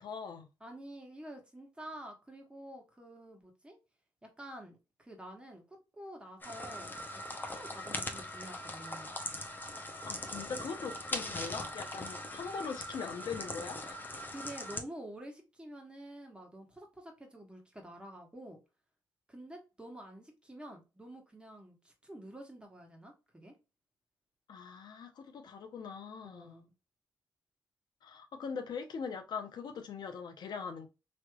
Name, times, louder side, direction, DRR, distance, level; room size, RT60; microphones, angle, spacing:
voice 1, 0.0-0.5 10.1-14.0 24.5-26.6 28.0-30.9, left 5 dB, 65° left, 0.7 m, -41 dB
voice 2, 0.6-3.8 4.2-9.1 11.2-11.4 14.3-18.6 19.3-23.5 26.3-26.7, right 1 dB, 15° right, 1.4 m, -49 dB
sound 1, 6.4-14.8, left 1 dB, 25° left, 0.8 m, -41 dB
3.1 x 3.0 x 2.3 m
supercardioid pair, 65°, 8 cm